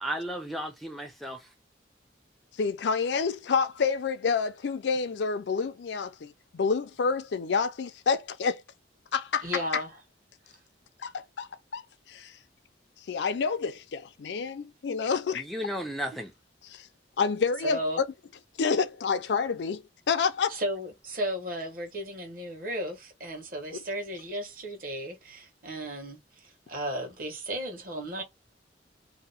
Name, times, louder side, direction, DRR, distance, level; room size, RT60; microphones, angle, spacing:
voice 1, 0.0-1.5 15.3-16.3, equal, ahead, 0.4 m, -34 dB
voice 2, 2.6-8.6 9.1-9.8 11.0-11.8 12.1-12.3 13.1-15.4 17.2-18.0 18.6-20.6 23.7-23.8, left 5 dB, 75° left, 0.4 m, -28 dB
voice 3, 9.4-10.0 17.6-18.0 20.5-28.2, equal, 50° right, 1.3 m, -34 dB
2.8 x 2.1 x 3.9 m
head